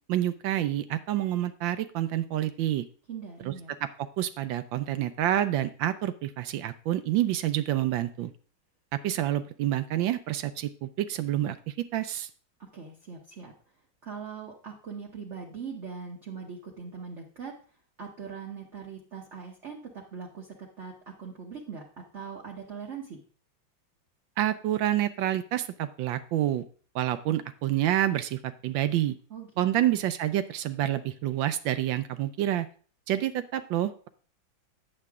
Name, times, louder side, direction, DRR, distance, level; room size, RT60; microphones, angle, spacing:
voice 1, 0.1-2.8 3.4-3.5 3.8-3.9 4.2-8.3 8.9-12.3 24.4-26.7 26.9-29.1 29.6-32.7 33.1-34.1, right 12 dB, 75° right, 12 dB, 1.2 m, -28 dB
voice 2, 3.1-3.7 12.7-13.5 14.0-17.5 18.0-20.9 21.2-23.2 29.3-29.5 29.7-30.0, right 6 dB, 45° right, -1 dB, 1.2 m, -41 dB
9.0 x 7.6 x 3.5 m, 0.41 s
omnidirectional pair, 2.2 m